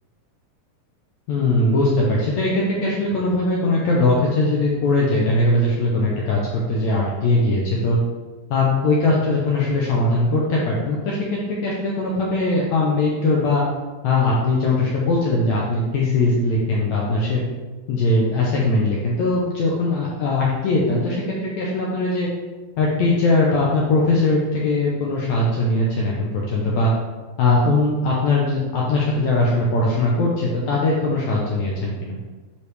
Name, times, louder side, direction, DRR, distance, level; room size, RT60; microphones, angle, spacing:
voice 1, 1.3-8.0 8.5-11.2 11.5-13.6 14.0-17.4 17.9-22.3 22.8-26.9 27.4-32.2, left 2 dB, 75° left, -4 dB, 1.7 m, -20 dB
9.5 x 3.3 x 3.3 m, 1.3 s
omnidirectional pair, 4.1 m